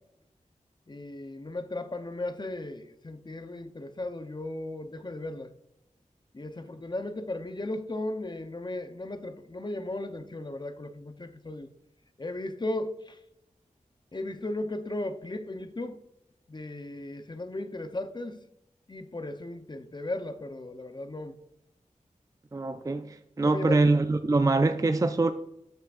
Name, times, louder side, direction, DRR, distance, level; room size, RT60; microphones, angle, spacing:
voice 1, 0.9-5.5 6.3-11.7 12.2-13.2 14.1-16.0 16.5-18.4 18.9-21.4 23.4-23.8, left 2 dB, 35° left, 0.8 m, -36 dB
voice 2, 22.5-25.3, right 3 dB, 25° right, 0.4 m, -24 dB
13.0 x 5.9 x 2.5 m
wide cardioid pair, 75°, 14 cm